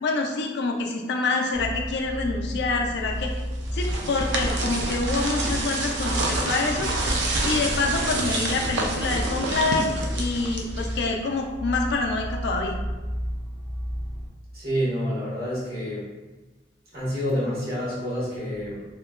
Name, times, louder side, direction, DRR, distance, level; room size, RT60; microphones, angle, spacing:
voice 1, 0.0-3.3 3.7-6.9 7.4-9.9 10.2-12.7, left 3 dB, 65° left, 1 dB, 0.4 m, -26 dB
sound 1, 1.5-14.3, equal, ahead, 0.4 m, -32 dB
sound 2, 3.4-11.2, right 2 dB, 80° right, 0.4 m, -28 dB
voice 2, 14.5-16.1 16.9-18.9, equal, 60° right, -8 dB, 1.2 m, -28 dB
2.8 x 2.1 x 2.3 m, 1.2 s
head